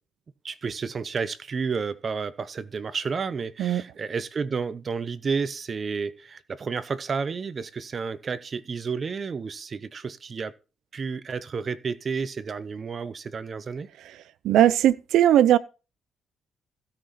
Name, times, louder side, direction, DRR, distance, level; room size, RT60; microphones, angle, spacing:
voice 1, 0.4-10.5 10.9-13.9, right 5 dB, 40° right, 0.8 m, -31 dB
voice 2, 14.4-15.6, right 11 dB, 80° right, 0.5 m, -18 dB
16.0 x 5.9 x 4.1 m
cardioid pair, 90°, 0 cm